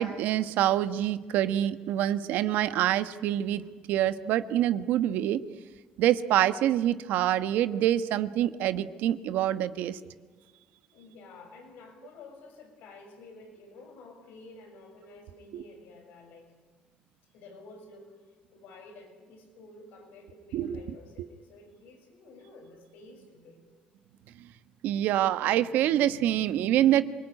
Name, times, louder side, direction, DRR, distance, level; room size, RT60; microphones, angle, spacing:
voice 1, 0.0-5.4 6.0-10.0 15.5-15.6 20.5-20.8 24.8-27.0, right 12 dB, 80° right, 12 dB, 1.2 m, -26 dB
voice 2, 10.9-16.5 17.3-23.6, left 2 dB, 85° left, 4 dB, 6.5 m, -51 dB
26.5 x 19.5 x 9.9 m, 1.4 s
cardioid pair, 95°, 3 cm